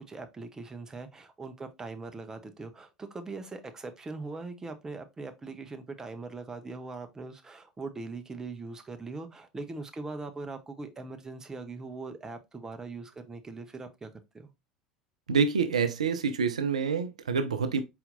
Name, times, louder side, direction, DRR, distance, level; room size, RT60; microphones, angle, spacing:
voice 1, 0.0-14.5, right 3 dB, 15° right, 0.8 m, -41 dB
voice 2, 15.3-17.8, right 5 dB, 80° right, 0.4 m, -27 dB
4.3 x 4.1 x 2.5 m
figure-of-eight pair, 75°, 3 cm